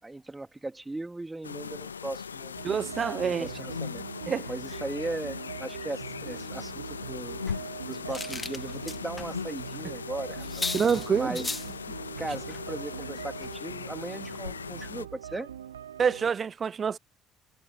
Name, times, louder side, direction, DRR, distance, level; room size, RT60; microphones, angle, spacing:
voice 1, 0.0-2.5 3.2-4.0 4.5-7.4 7.9-10.6 11.1-11.5 12.2-15.5, right 2 dB, 15° right, 3.2 m, -38 dB
sound 1, 1.4-15.1, left 6 dB, 85° left, 0.5 m, -39 dB
sound 2, 2.5-16.3, right 9 dB, 85° right, 0.6 m, -42 dB
voice 2, 2.6-3.5 4.3-4.5 10.7-11.4 16.0-17.0, right 6 dB, 40° right, 0.4 m, -27 dB
sound 3, 7.4-9.3 9.7-9.8 10.1-10.2 10.4-11.7 12.5-12.7 13.0-13.2 13.4-13.5, left 3 dB, 20° left, 1.7 m, -37 dB
figure-of-eight pair, 55°, 0 cm